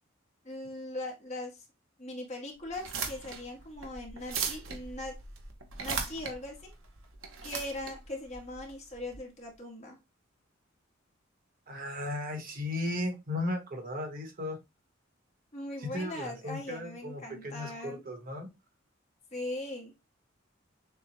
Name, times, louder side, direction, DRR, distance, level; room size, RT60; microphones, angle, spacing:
voice 1, 0.4-1.6 2.0-5.1 5.8-6.7 7.4-10.0 15.5-18.0 19.3-19.9, left 1 dB, 35° left, 0 dB, 1.5 m, -40 dB
sound 1, 2.7-9.2, right 6 dB, 90° right, 1.0 m, -38 dB
voice 2, 11.7-14.6 15.8-18.5, left 1 dB, 45° right, 4 dB, 1.2 m, -36 dB
6.7 x 2.3 x 3.1 m, 0.23 s
head